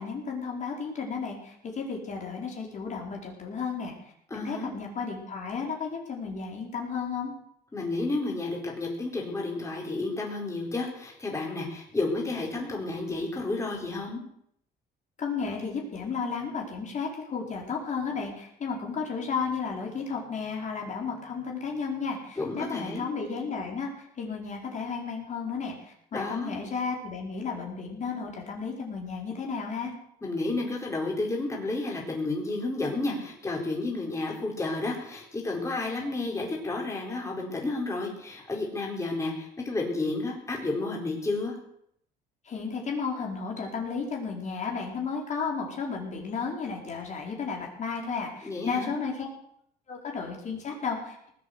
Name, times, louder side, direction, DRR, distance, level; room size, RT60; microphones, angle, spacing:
voice 1, 0.0-7.3 15.2-29.9 42.4-49.3 49.9-51.3, left 5 dB, 45° left, 0 dB, 4.6 m, -33 dB
voice 2, 4.3-4.7 7.7-14.2 22.4-23.1 26.1-26.6 30.2-41.6 48.4-48.9, left 2 dB, 15° left, -1 dB, 4.5 m, -31 dB
19.0 x 8.6 x 8.1 m, 0.72 s
cardioid pair, 110°, 17 cm